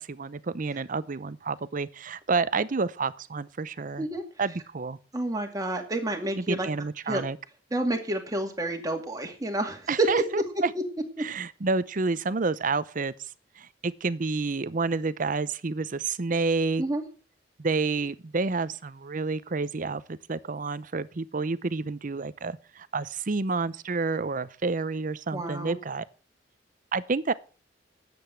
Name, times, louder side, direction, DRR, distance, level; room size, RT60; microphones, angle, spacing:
voice 1, 0.0-4.1 4.4-5.0 6.3-7.4 9.9-10.7 11.2-13.1 13.6-16.8 17.6-26.0 26.9-27.3, right 4 dB, 45° right, 0.6 m, -29 dB
voice 2, 5.1-6.7 7.1-7.2 7.7-10.1 16.8-17.0 25.3-25.8, right 1 dB, 20° right, 2.2 m, -29 dB
10.0 x 7.9 x 8.0 m
head